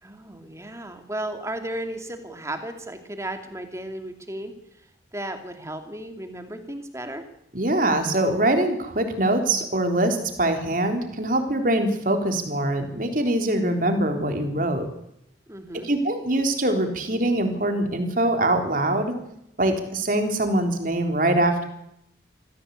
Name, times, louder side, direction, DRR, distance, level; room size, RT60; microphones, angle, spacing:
voice 1, 0.0-4.5 5.1-7.2 15.5-15.9, right 1 dB, 15° right, 7 dB, 2.6 m, -34 dB
voice 2, 7.5-14.9 15.8-19.1 19.6-21.6, right 1 dB, 45° right, 5 dB, 3.7 m, -23 dB
25.5 x 16.0 x 8.4 m, 0.78 s
head